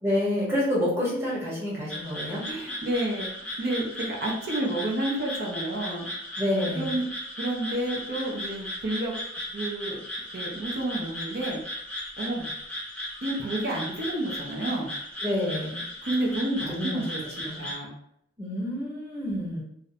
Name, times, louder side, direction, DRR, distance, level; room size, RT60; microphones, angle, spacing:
voice 1, 0.0-2.4 6.4-7.0 15.2-15.8 16.5-17.0 17.4-17.6 18.4-19.6, left 1 dB, 15° right, -7 dB, 0.9 m, -28 dB
sound 1, 1.9-17.8, left 1 dB, 5° left, 0.4 m, -36 dB
voice 2, 2.5-3.3 3.6-6.1 6.7-7.1 7.4-9.1 9.5-10.0 10.3-11.6 12.2-12.5 13.2-14.9 16.0-17.9, right 1 dB, 55° right, -2 dB, 0.5 m, -30 dB
2.6 x 2.0 x 2.6 m, 0.73 s
head